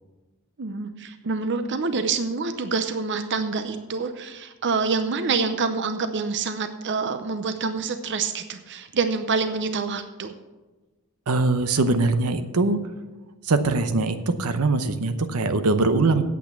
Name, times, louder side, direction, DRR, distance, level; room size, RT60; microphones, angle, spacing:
voice 1, 0.6-10.3, right 4 dB, 55° right, 8 dB, 0.7 m, -27 dB
voice 2, 11.3-12.8 13.4-16.2, right 3 dB, 85° right, 9 dB, 0.8 m, -22 dB
8.5 x 8.4 x 7.0 m, 1.2 s
head